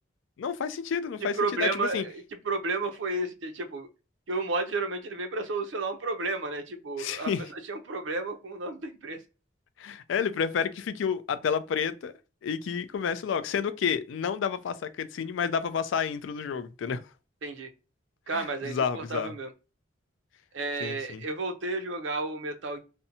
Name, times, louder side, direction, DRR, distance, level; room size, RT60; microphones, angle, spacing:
voice 1, 0.4-1.3 1.6-2.0 7.0-7.4 9.8-12.1 12.4-17.0 18.3-19.3 20.8-21.2, left 6 dB, 75° left, 0.3 m, -30 dB
voice 2, 1.3-3.9 4.3-9.2 17.4-17.7 18.3-19.5 20.5-22.8, right 3 dB, 70° right, 0.6 m, -32 dB
2.6 x 2.1 x 2.6 m
head